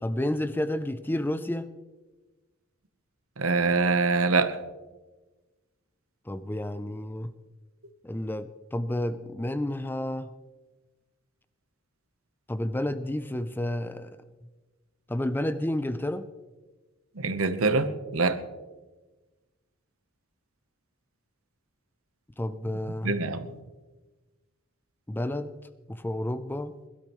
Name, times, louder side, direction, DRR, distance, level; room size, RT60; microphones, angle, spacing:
voice 1, 0.0-1.7 6.3-7.3 8.0-10.3 12.5-14.2 15.1-16.3 22.4-23.2 25.1-25.6 25.9-26.7, left 1 dB, 10° left, 12 dB, 0.4 m, -30 dB
voice 2, 3.4-4.6 17.2-18.4 23.0-23.5, right 3 dB, 75° right, 10 dB, 1.0 m, -24 dB
21.5 x 12.5 x 3.1 m, 1.2 s
head